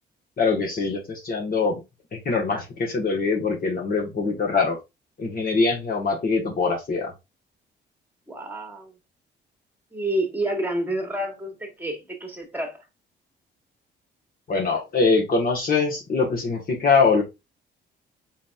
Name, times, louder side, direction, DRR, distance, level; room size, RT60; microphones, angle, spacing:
voice 1, 0.4-1.8 2.1-4.8 5.2-7.1 14.5-17.2, left 4 dB, 45° left, 1.2 m, -23 dB
voice 2, 8.3-8.9 9.9-12.8, right 1 dB, 10° right, 1.4 m, -29 dB
4.0 x 4.0 x 2.3 m
cardioid pair, 90°, 20 cm